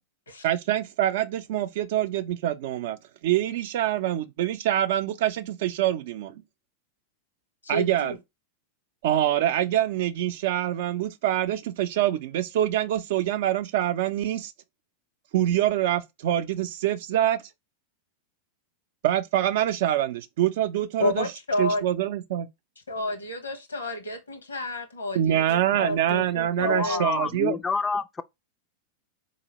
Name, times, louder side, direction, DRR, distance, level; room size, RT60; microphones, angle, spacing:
voice 1, 0.4-3.0 3.2-6.4 7.7-8.1 9.0-14.5 15.3-17.4 19.0-21.3 21.6-22.5 25.1-27.6, right 12 dB, 60° right, 0.5 m, -25 dB
voice 2, 7.6-8.2 21.0-21.8 22.9-27.1, left 1 dB, 85° left, 1.0 m, -30 dB
voice 3, 26.6-28.2, left 5 dB, 20° left, 0.3 m, -28 dB
4.1 x 2.7 x 2.9 m
hypercardioid pair, 95°, 0 cm